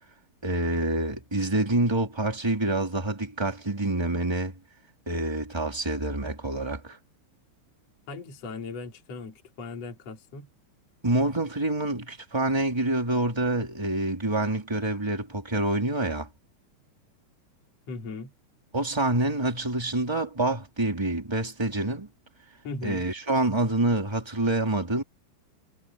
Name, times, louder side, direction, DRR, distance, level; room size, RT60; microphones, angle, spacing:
voice 1, 0.4-4.5 5.0-7.0 11.0-16.3 18.7-22.1 22.8-25.0, right 2 dB, 5° right, 3.3 m, -27 dB
voice 2, 8.1-10.5 17.9-18.3 22.6-23.0, left 4 dB, 35° left, 4.6 m, -38 dB
omnidirectional pair, 5.4 m